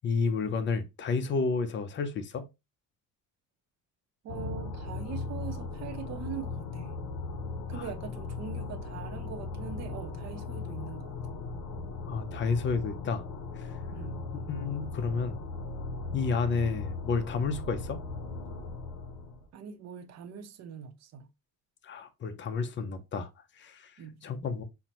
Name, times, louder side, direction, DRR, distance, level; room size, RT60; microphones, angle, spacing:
voice 1, 0.0-2.4 7.8-7.9 12.1-13.2 13.6-13.7 14.5-15.4 16.1-18.0 21.8-23.3 23.6-23.9 24.2-24.6, left 4 dB, 35° left, 0.6 m, -31 dB
voice 2, 4.2-7.0 7.7-11.2 13.9-14.3 19.5-21.3 24.0-24.3, right 8 dB, 50° right, 0.7 m, -42 dB
sound 1, 4.3-19.5, left 4 dB, 75° left, 0.8 m, -38 dB
5.7 x 2.1 x 2.9 m
cardioid pair, 135°, 33 cm